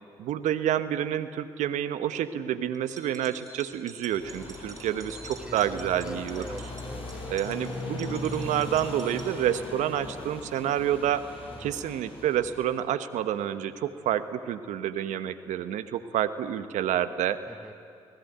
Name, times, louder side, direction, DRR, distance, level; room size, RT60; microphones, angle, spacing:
voice 1, 0.2-6.4 7.3-11.2 11.6-17.4, right 10 dB, 70° right, 11 dB, 1.2 m, -28 dB
sound 1, 2.7-9.3, right 2 dB, 25° right, 5.3 m, -48 dB
sound 2, 4.2-12.7, left 2 dB, 45° left, 6.8 m, -39 dB
voice 2, 5.4-7.2 11.5-11.8 17.5-17.7, right 1 dB, 5° right, 9 dB, 1.7 m, -44 dB
29.0 x 19.0 x 9.3 m, 2.4 s
hypercardioid pair, 40°, 13 cm